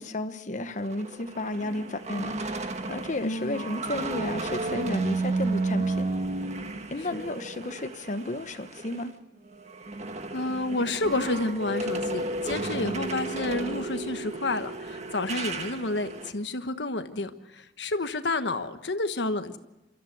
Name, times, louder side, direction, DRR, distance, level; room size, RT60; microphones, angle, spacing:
voice 1, 0.0-2.6 2.9-6.1 6.9-9.1, left 2 dB, 45° left, 9 dB, 1.1 m, -33 dB
sound 1, 0.7-9.1 9.4-16.3, right 2 dB, 40° right, 1.5 m, -33 dB
voice 2, 3.2-3.7 7.1-7.2 10.3-19.6, left 2 dB, 90° left, 9 dB, 1.3 m, -30 dB
28.0 x 14.0 x 7.9 m, 1.0 s
head